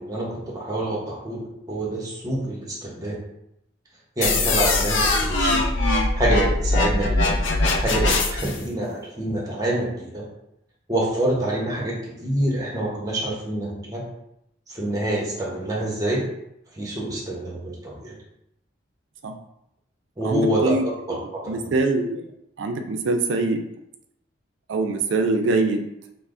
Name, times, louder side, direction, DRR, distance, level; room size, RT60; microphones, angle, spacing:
voice 1, 0.0-3.2 4.2-5.6 6.1-7.4 7.7-10.2 10.9-14.0 14.7-16.3 16.7-18.2 20.2-21.7, right 1 dB, 20° right, -3 dB, 0.8 m, -27 dB
sound 1, 4.2-8.6, left 2 dB, 80° left, 0.5 m, -21 dB
voice 2, 20.2-20.8 21.5-22.2 22.6-23.7 24.7-25.9, right 3 dB, 75° right, 5 dB, 0.4 m, -23 dB
5.3 x 2.0 x 2.5 m, 0.80 s
head